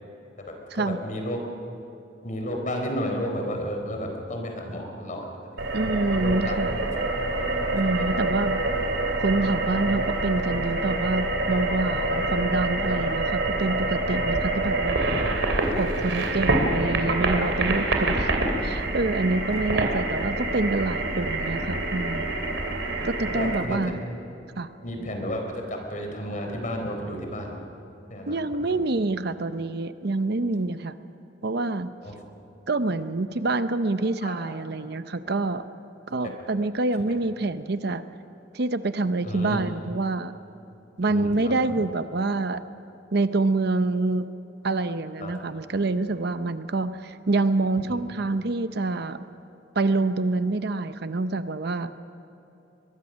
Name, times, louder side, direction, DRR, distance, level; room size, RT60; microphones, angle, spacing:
voice 1, 0.4-1.4 2.2-5.3 5.5-5.6 6.1-6.6 7.8-8.1 16.0-16.2 23.3-23.9 24.8-27.6 28.1-28.7 32.0-32.1 34.2-34.5 37.0-37.2 39.2-39.7 41.1-41.6 45.2-45.4 47.9-48.0, equal, 45° left, 3 dB, 4.1 m, -32 dB
sound 1, 5.6-23.6, right 2 dB, 80° right, 3.1 m, -26 dB
voice 2, 5.7-6.8 7.7-8.6 9.2-15.0 15.8-22.3 23.0-24.0 24.6-24.7 28.3-30.9 31.4-31.9 32.7-35.6 36.1-38.0 38.5-40.4 41.0-42.6 43.1-44.3 44.6-49.3 49.7-52.0, right 2 dB, 60° right, 11 dB, 0.8 m, -26 dB
22.5 x 22.0 x 6.4 m, 2.9 s
head